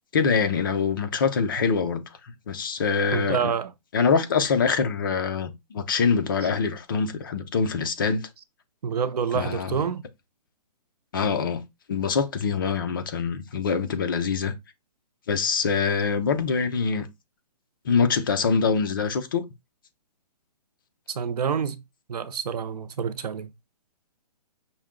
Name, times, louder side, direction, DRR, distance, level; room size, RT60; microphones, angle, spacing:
voice 1, 0.1-2.0 2.5-3.5 3.9-8.3 9.3-9.8 11.1-11.6 11.9-14.5 15.3-17.1 17.9-19.4, left 5 dB, 30° left, 0.5 m, -24 dB
voice 2, 3.1-3.7 8.8-10.0 21.1-21.8 22.1-23.5, right 7 dB, 70° right, 0.7 m, -27 dB
5.7 x 2.2 x 3.6 m
hypercardioid pair, 170°, 21 cm